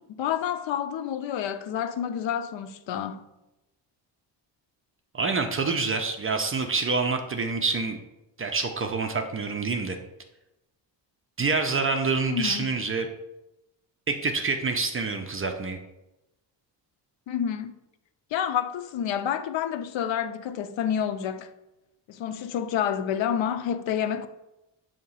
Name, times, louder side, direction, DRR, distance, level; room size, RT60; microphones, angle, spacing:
voice 1, 0.1-3.2 12.3-12.7 17.3-17.8 18.3-21.5 22.1-24.3, left 9 dB, 80° left, 0.6 m, -29 dB
voice 2, 5.1-8.0 8.4-10.0 11.4-13.1 14.1-15.8, right 4 dB, 30° right, 0.5 m, -27 dB
7.2 x 2.9 x 5.4 m
cardioid pair, 135°, 44 cm